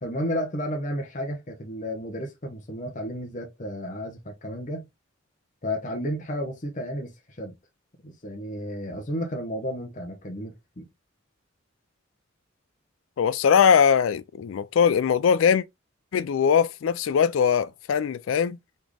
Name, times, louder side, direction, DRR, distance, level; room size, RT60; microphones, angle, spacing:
voice 1, 0.0-4.9 5.6-7.5 8.0-10.9, equal, 40° left, 0.9 m, -32 dB
voice 2, 13.2-15.6 16.1-18.6, left 7 dB, 80° left, 0.4 m, -21 dB
4.2 x 3.5 x 3.2 m
head